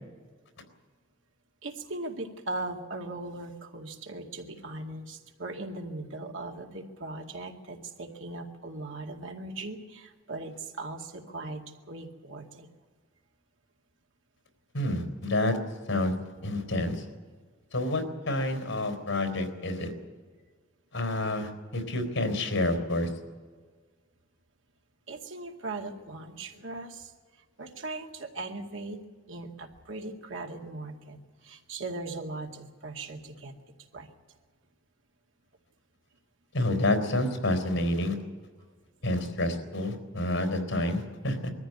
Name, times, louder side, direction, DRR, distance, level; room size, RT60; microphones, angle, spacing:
voice 1, 1.6-12.7 25.1-27.1 27.6-29.0 29.3-33.5 33.9-34.1, right 2 dB, 75° right, 2 dB, 2.3 m, -39 dB
voice 2, 14.7-15.6 15.9-16.1 16.4-17.0 17.7-19.9 20.9-23.1 36.5-38.2 39.0-41.5, left 1 dB, 85° left, 7 dB, 4.0 m, -28 dB
22.0 x 14.0 x 9.5 m, 1.5 s
head